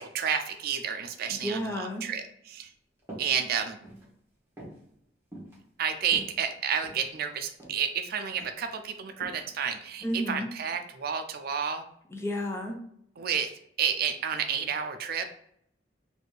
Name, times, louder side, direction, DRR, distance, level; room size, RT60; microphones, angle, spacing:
voice 1, 0.0-2.7 3.2-3.8 5.8-11.8 13.2-15.3, right 7 dB, 55° right, 8 dB, 0.4 m, -31 dB
voice 2, 1.4-2.0 10.0-10.5 12.1-12.8, equal, 15° left, 1 dB, 0.6 m, -31 dB
sound 1, 3.0-3.4 3.7-4.1 4.6-4.8 5.3-5.6 6.0-7.1 7.6-7.8 8.2-8.6 9.2-9.4 10.0-10.3, right 1 dB, 15° right, 1.4 m, -45 dB
4.1 x 2.6 x 3.2 m, 0.70 s
head